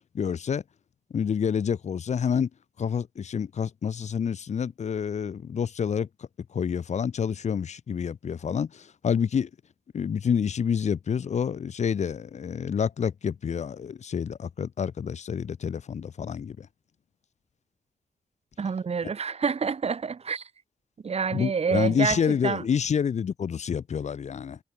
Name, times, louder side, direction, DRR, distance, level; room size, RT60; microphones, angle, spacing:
voice 1, 0.1-0.6 1.1-2.5 2.8-6.1 6.5-9.5 9.9-16.7 21.3-24.6, left 7 dB, 65° left, 1.2 m, -28 dB
voice 2, 18.6-20.4 21.0-22.6, right 5 dB, 55° right, 2.8 m, -28 dB
cardioid pair, 75°, 13 cm